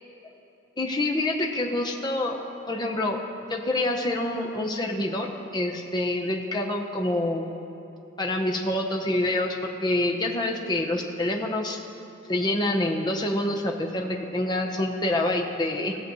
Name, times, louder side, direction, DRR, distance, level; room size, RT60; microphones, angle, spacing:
voice 1, 0.8-2.3 2.7-3.2 3.5-7.5 8.2-11.8 12.3-16.0, left 1 dB, 20° left, 1 dB, 0.8 m, -26 dB
19.5 x 7.0 x 3.1 m, 2.9 s
head